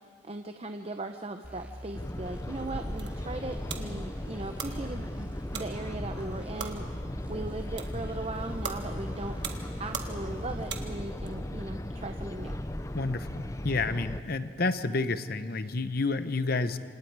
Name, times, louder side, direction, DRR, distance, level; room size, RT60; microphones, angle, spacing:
voice 1, 0.2-9.4 9.8-12.6, right 2 dB, 30° right, 7 dB, 0.8 m, -38 dB
sound 1, 1.4-10.9, right 1 dB, 10° right, 1.8 m, -44 dB
sound 2, 1.9-14.2, left 1 dB, 15° left, 0.7 m, -37 dB
sound 3, 2.7-11.3, right 7 dB, 65° right, 1.7 m, -43 dB
voice 2, 12.9-16.8, left 3 dB, 55° left, 12 dB, 0.9 m, -30 dB
27.5 x 27.0 x 4.8 m, 2.2 s
head